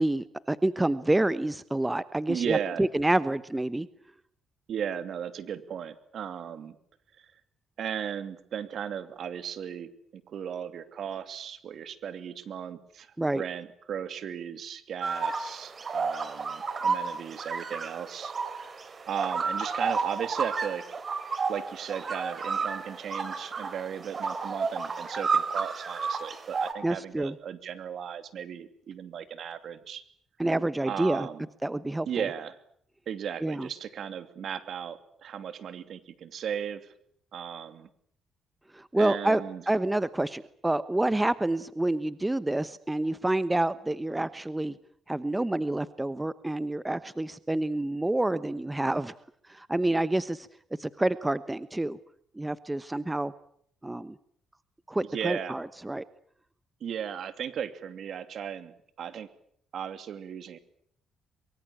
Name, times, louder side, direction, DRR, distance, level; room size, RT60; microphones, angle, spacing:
voice 1, 0.0-3.9 13.2-13.4 26.8-27.3 30.4-31.3 31.6-32.2 33.4-33.7 38.7-44.7 45.1-49.1 49.5-50.5 50.8-52.0 52.4-53.3 53.8-54.2 54.9-56.0, right 1 dB, 10° right, 15 dB, 1.0 m, -28 dB
voice 2, 2.3-2.8 4.7-6.7 7.2-7.3 7.8-18.8 19.1-20.8 21.5-30.0 30.8-31.4 32.1-32.6 33.1-36.9 37.3-37.9 39.0-39.6 55.1-55.6 56.8-59.3 59.7-60.6, right 8 dB, 65° right, 11 dB, 2.7 m, -36 dB
sound 1, 15.0-26.7, right 5 dB, 40° right, 4.2 m, -31 dB
24.0 x 23.5 x 8.7 m, 0.65 s
cardioid pair, 90°, 0 cm